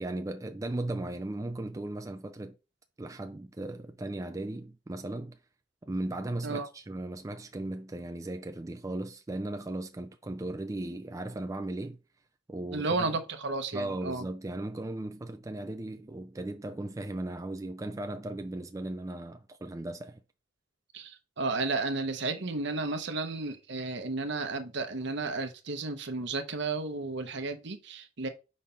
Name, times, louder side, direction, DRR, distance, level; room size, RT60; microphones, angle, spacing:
voice 1, 0.0-2.6 3.0-5.4 5.8-12.0 12.5-13.2 13.7-20.2, right 2 dB, 15° right, 0.4 m, -37 dB
voice 2, 12.7-14.2 20.9-28.3, right 3 dB, 65° right, 1.0 m, -33 dB
5.3 x 3.3 x 5.6 m
head